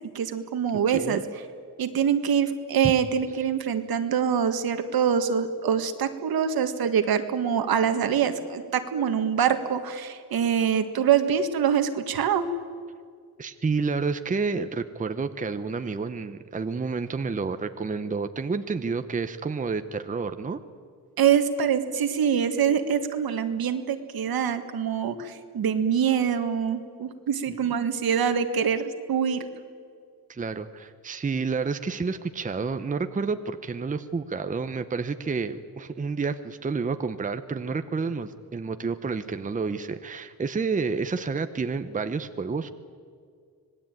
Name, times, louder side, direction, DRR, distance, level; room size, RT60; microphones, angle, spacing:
voice 1, 0.2-1.2 1.8-12.5 21.2-29.5, right 8 dB, 70° right, 8 dB, 1.8 m, -24 dB
voice 2, 0.9-1.2 13.4-20.6 27.5-27.6 30.3-42.7, right 4 dB, 20° right, 10 dB, 0.8 m, -29 dB
25.5 x 19.0 x 9.1 m, 2.1 s
cardioid pair, 130°, 37 cm